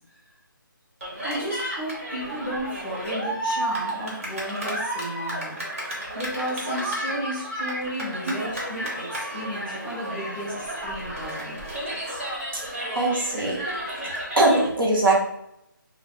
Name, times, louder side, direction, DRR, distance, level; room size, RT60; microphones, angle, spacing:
Cheering, 1.0-14.7, right 1 dB, 40° right, 0.8 m, -32 dB
voice 1, 1.2-5.6 6.1-11.6, equal, 5° right, -12 dB, 0.5 m, -34 dB
voice 2, 12.9-13.6 14.0-14.1 14.4-15.2, right 2 dB, 75° right, -2 dB, 1.1 m, -21 dB
2.5 x 2.0 x 3.9 m, 0.78 s
hypercardioid pair, 180°, 12 cm